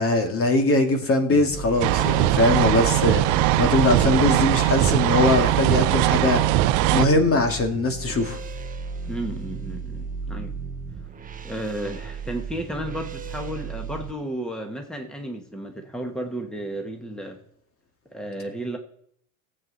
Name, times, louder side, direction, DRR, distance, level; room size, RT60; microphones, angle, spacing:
voice 1, 0.0-3.2 3.6-6.4 6.9-8.4, left 2 dB, 30° left, 5 dB, 2.3 m, -21 dB
sound 1, 1.3-14.1, right 4 dB, 20° right, 1.1 m, -35 dB
sound 2, 1.8-7.1, right 15 dB, 65° right, 0.9 m, -20 dB
voice 2, 9.1-10.5 11.4-17.4 18.1-18.8, right 1 dB, ahead, 4 dB, 1.7 m, -33 dB
17.5 x 7.9 x 4.2 m, 0.66 s
hypercardioid pair, 90°, 42 cm